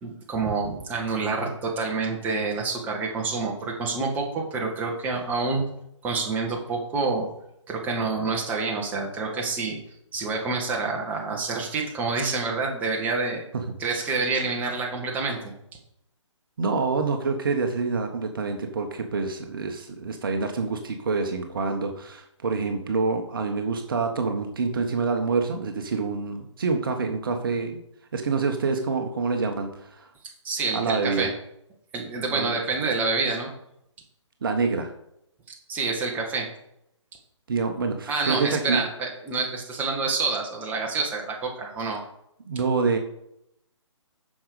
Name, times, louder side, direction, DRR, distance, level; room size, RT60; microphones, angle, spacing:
voice 1, 0.0-5.6 6.0-7.3 7.7-9.8 10.1-13.4 13.8-15.5 30.2-31.4 31.9-33.5 35.7-36.5 38.1-42.0, right 4 dB, 10° right, 0 dB, 1.5 m, -27 dB
voice 2, 16.6-27.8 28.1-30.1 30.7-31.3 32.3-32.5 34.4-34.9 37.5-38.8 42.5-43.0, right 4 dB, 45° right, 5 dB, 1.3 m, -26 dB
9.5 x 6.4 x 5.0 m, 0.78 s
figure-of-eight pair, 140°, 16 cm